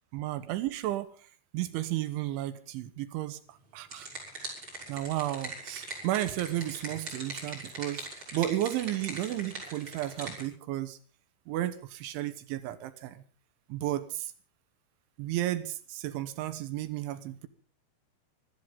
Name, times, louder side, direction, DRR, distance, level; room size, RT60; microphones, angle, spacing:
voice 1, 0.1-1.1 1.5-4.1 4.9-11.0 11.5-13.2 13.7-14.3 15.2-17.5, right 14 dB, 80° right, 12 dB, 3.5 m, -33 dB
sound 1, 3.6-10.4, right 2 dB, 25° right, 6.8 m, -41 dB
25.5 x 13.0 x 3.8 m, 0.39 s
omnidirectional pair, 5.5 m